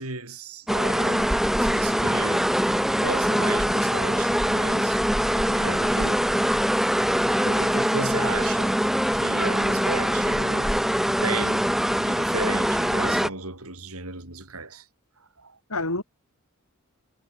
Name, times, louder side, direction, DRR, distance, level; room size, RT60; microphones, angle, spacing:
voice 1, 0.0-5.0 5.3-6.0 7.4-8.8 9.1-11.7 12.0-14.9 15.2-15.6, right 3 dB, 80° right, 7.3 m, -35 dB
sound 1, 0.7-13.3, equal, ahead, 1.0 m, -23 dB
voice 2, 5.3-6.2 15.7-16.0, left 2 dB, 80° left, 7.2 m, -31 dB
head